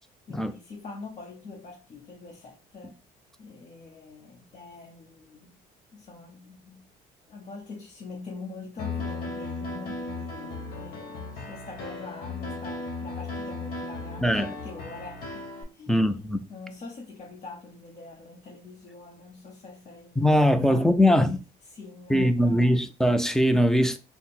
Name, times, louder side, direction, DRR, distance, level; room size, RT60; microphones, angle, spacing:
voice 1, 0.3-3.0 3.4-5.6 5.9-6.9 7.3-15.4 15.7-16.1 16.5-21.3 21.7-22.7, left 3 dB, 45° left, 0.8 m, -44 dB
Piano, 8.8-15.6, left 3 dB, 65° left, 1.1 m, -36 dB
voice 2, 14.2-14.5 15.9-16.4 20.2-21.4 22.1-24.0, equal, 5° left, 0.4 m, -21 dB
3.6 x 2.0 x 4.2 m
cardioid pair, 110°, 17 cm